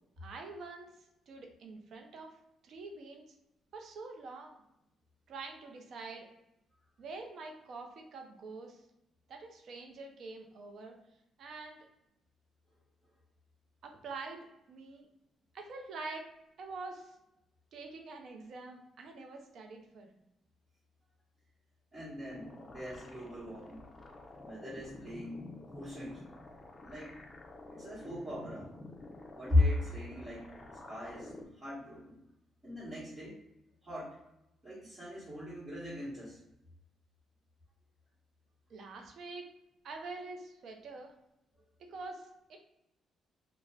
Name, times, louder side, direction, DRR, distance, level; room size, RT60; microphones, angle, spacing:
voice 1, 0.2-0.9 1.3-2.4 2.6-3.2 3.7-4.5 5.3-6.3 7.0-8.8 9.3-11.0 11.4-11.8 13.8-15.1 15.5-16.3 16.6-17.1 17.7-20.1 38.7-39.5 39.8-41.1 41.8-42.6, right 3 dB, 65° right, 3 dB, 0.5 m, -45 dB
voice 2, 21.9-23.8 24.4-26.3 26.8-27.1 27.7-28.7 29.3-30.5 30.9-32.2 32.6-33.4 33.8-34.2 34.6-36.4, left 2 dB, 30° right, -11 dB, 1.2 m, -36 dB
sound 1, 22.3-31.4, left 2 dB, 35° left, 0.4 m, -50 dB
2.4 x 2.1 x 3.3 m, 0.86 s
cardioid pair, 90°, 0 cm